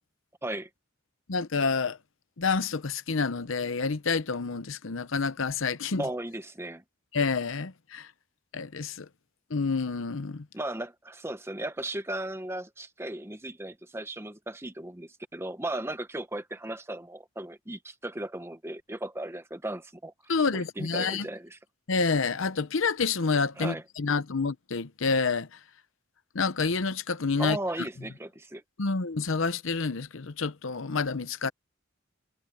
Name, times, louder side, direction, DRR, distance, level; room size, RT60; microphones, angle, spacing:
voice 1, 1.3-2.0 2.4-6.0 7.1-8.1 8.5-9.1 9.5-10.4 20.3-21.3 21.9-25.5 26.3-27.6 28.8-31.5, left 4 dB, 70° left, 0.8 m, -28 dB
voice 2, 6.0-6.8 10.5-20.1 20.5-21.6 23.6-23.8 27.4-28.6, right 1 dB, 10° right, 1.0 m, -36 dB
head